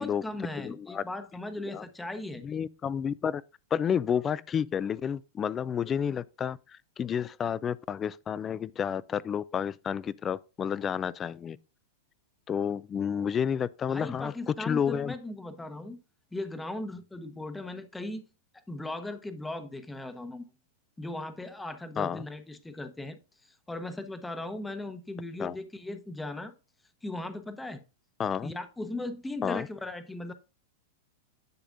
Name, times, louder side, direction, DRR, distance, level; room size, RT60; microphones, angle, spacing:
voice 1, 0.0-2.4 13.9-16.0 16.3-18.2 18.7-20.4 21.0-23.2 23.7-26.5 27.0-27.8 28.4-30.3, left 2 dB, 5° left, 0.9 m, -38 dB
voice 2, 0.6-1.0 1.7-1.8 2.4-3.4 3.7-6.6 7.0-11.6 12.5-15.1 22.0-22.3 25.4-25.6 28.2-28.5 29.4-29.7, left 8 dB, 20° left, 0.3 m, -30 dB
10.5 x 7.0 x 2.6 m
hypercardioid pair, 135°, 0 cm